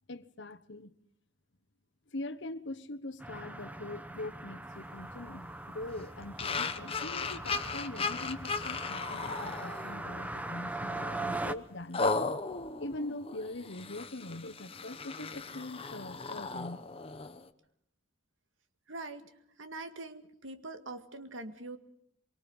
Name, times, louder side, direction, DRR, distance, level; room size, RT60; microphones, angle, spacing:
voice 1, 0.1-0.9 2.1-12.3 12.8-16.8, left 2 dB, 65° left, 1.2 m, -42 dB
sound 1, 3.2-11.5, right 2 dB, 10° right, 1.0 m, -41 dB
sound 2, 6.4-10.2 10.7-10.9 11.9-17.5, left 4 dB, 30° left, 1.1 m, -36 dB
voice 2, 18.9-21.8, right 2 dB, 80° right, 2.0 m, -43 dB
25.0 x 24.0 x 5.5 m
head